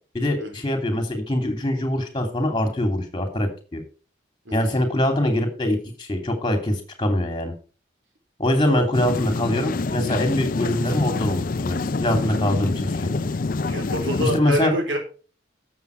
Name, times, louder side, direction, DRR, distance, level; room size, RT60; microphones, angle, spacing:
voice 1, 0.1-3.8 4.5-7.5 8.4-13.1 14.2-14.7, left 1 dB, 25° left, 6 dB, 2.7 m, -23 dB
voice 2, 4.5-4.8 8.6-8.8 13.6-15.0, equal, 80° right, 3 dB, 4.0 m, -27 dB
sound 1, 8.9-14.4, left 3 dB, 45° left, 0.5 m, -26 dB
12.0 x 7.6 x 4.6 m, 0.36 s
head